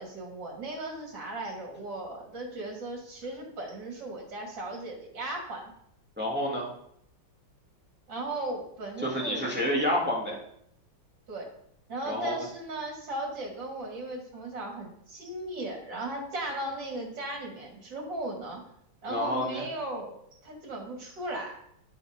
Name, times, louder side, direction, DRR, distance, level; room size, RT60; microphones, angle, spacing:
voice 1, 0.0-5.7 8.1-9.5 11.3-11.5 11.9-18.6 19.0-21.6, right 2 dB, 65° right, 0 dB, 3.0 m, -37 dB
voice 2, 6.2-6.7 9.0-10.4 12.0-12.4 19.1-19.6, equal, 5° right, -3 dB, 2.6 m, -29 dB
12.0 x 8.1 x 5.3 m, 0.72 s
omnidirectional pair, 2.1 m